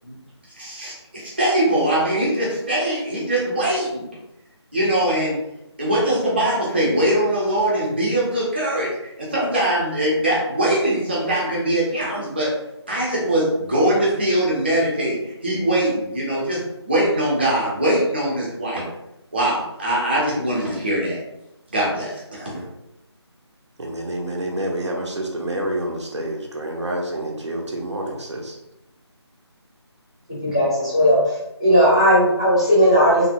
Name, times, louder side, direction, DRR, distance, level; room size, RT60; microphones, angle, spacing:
voice 1, 0.6-4.1 4.7-5.4 5.8-12.5 12.9-18.8 19.3-21.2 21.7-22.7, right 1 dB, 20° right, -6 dB, 0.7 m, -22 dB
voice 2, 23.8-28.6, right 1 dB, 85° right, -1 dB, 0.8 m, -28 dB
voice 3, 30.3-31.2 31.6-33.3, equal, 15° left, -7 dB, 0.5 m, -16 dB
2.9 x 2.7 x 2.6 m, 0.88 s
figure-of-eight pair, 175°, 15 cm